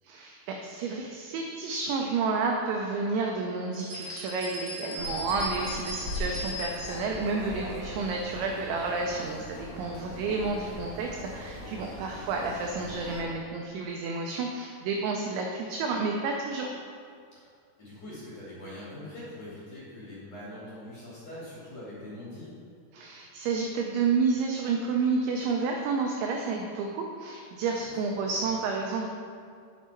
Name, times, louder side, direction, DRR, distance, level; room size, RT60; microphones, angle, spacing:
voice 1, 0.0-16.7 22.9-29.1, right 4 dB, 90° right, 1 dB, 2.6 m, -30 dB
sound 1, 3.7-7.1, left 1 dB, 65° right, 3.0 m, -38 dB
voice 2, 4.9-5.3 9.7-10.3 17.3-17.5 17.8-22.5 27.7-27.9, left 1 dB, 45° left, -8 dB, 3.0 m, -43 dB
sound 2, 5.0-13.2, left 1 dB, 85° left, 1.2 m, -40 dB
9.1 x 7.1 x 4.4 m, 2.3 s
omnidirectional pair, 6.0 m